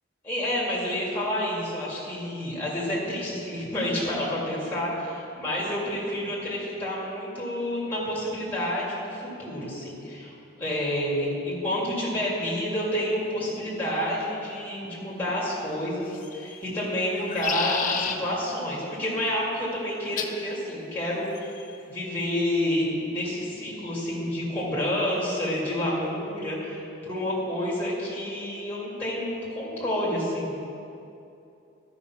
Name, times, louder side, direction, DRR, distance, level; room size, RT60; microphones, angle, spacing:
voice 1, 0.2-30.6, left 1 dB, 10° left, -6 dB, 2.2 m, -29 dB
sound 1, 16.1-16.6 17.1-18.2 20.2-20.4 21.4-21.8, left 7 dB, 40° left, 0.5 m, -30 dB
12.5 x 5.5 x 5.8 m, 2.7 s
head